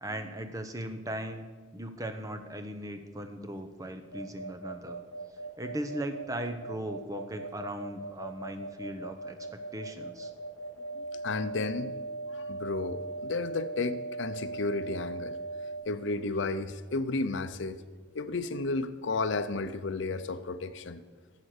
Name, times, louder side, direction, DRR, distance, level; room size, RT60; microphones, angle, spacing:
voice 1, 0.0-1.5 1.7-5.0 5.6-9.4 9.7-10.3, right 1 dB, 15° right, 7 dB, 0.7 m, -38 dB
sound 1, 4.1-15.8, right 2 dB, 70° right, 4.3 m, -39 dB
voice 2, 11.0-12.0 12.3-15.4 15.8-17.8 18.1-21.0, left 3 dB, 65° left, 12 dB, 0.6 m, -33 dB
11.5 x 7.6 x 6.5 m, 1.4 s
head